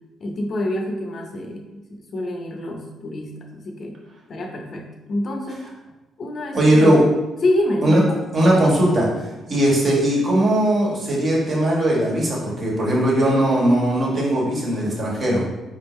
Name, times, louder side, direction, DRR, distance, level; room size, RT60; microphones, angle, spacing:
voice 1, 0.2-4.0 4.3-5.7 6.2-7.0 7.4-8.0, left 1 dB, 50° left, 3 dB, 0.7 m, -26 dB
voice 2, 6.5-7.0 7.8-8.0 8.3-9.1 9.5-15.4, right 1 dB, 50° right, -3 dB, 1.4 m, -18 dB
3.9 x 3.5 x 3.1 m, 1.1 s
cardioid pair, 90°, 0 cm